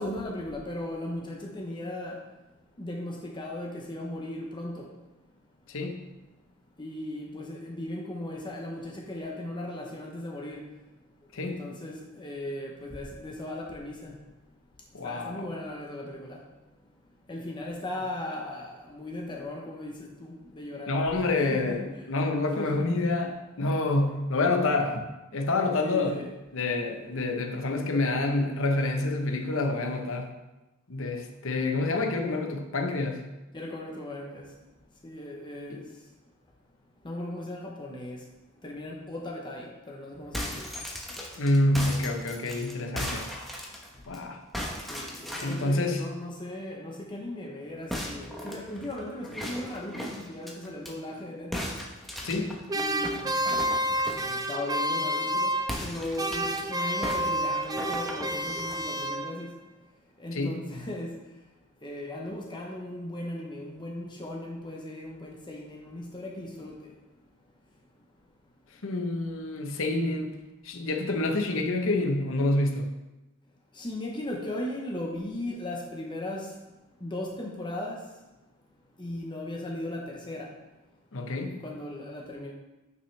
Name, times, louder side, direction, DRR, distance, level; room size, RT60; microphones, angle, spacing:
voice 1, 0.0-2.2 2.8-4.9 6.8-10.6 11.4-14.1 15.0-16.4 17.3-19.9 20.2-21.0 21.4-21.8 22.6-22.9 25.8-26.3 33.5-34.5 35.0-35.8 37.0-38.2 38.6-40.7 41.2-41.3 44.9-51.7 52.7-53.3 54.2-59.5 60.2-61.2 61.8-66.7 73.7-76.5 77.0-78.0 79.0-80.5 81.6-82.5, left 1 dB, 20° left, -1 dB, 0.8 m, -37 dB
voice 2, 5.7-6.0 11.3-11.7 14.9-15.5 20.9-26.2 26.5-30.3 30.9-33.2 35.7-35.8 41.4-43.3 44.1-44.4 45.4-46.1 52.2-52.6 60.3-60.6 68.8-70.3 70.6-72.9 81.1-81.6, left 2 dB, 65° left, 4 dB, 0.9 m, -28 dB
sound 1, 40.2-44.2 44.5-45.7 47.9-50.9 51.5-54.3 55.6-56.6 57.0-58.8, equal, ahead, 1.0 m, -37 dB
sound 2, 52.7-55.9 56.2-59.6, right 1 dB, 15° right, 0.4 m, -29 dB
9.3 x 5.6 x 3.3 m, 1.1 s
head